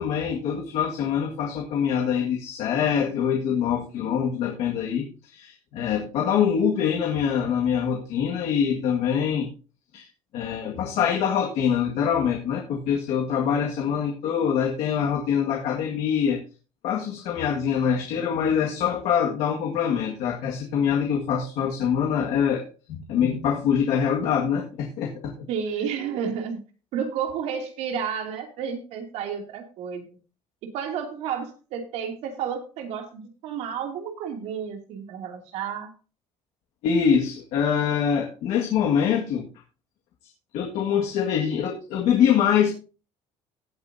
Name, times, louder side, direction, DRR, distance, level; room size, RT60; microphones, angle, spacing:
voice 1, 0.0-9.5 9.9-10.1 10.3-16.4 16.8-25.5 36.8-39.5 40.5-42.7, left 8 dB, 75° left, 1.9 m, -24 dB
voice 2, 25.5-26.6 26.9-30.1 30.6-35.9, right 7 dB, 80° right, 2.7 m, -31 dB
17.0 x 9.1 x 2.7 m
cardioid pair, 165°, 11 cm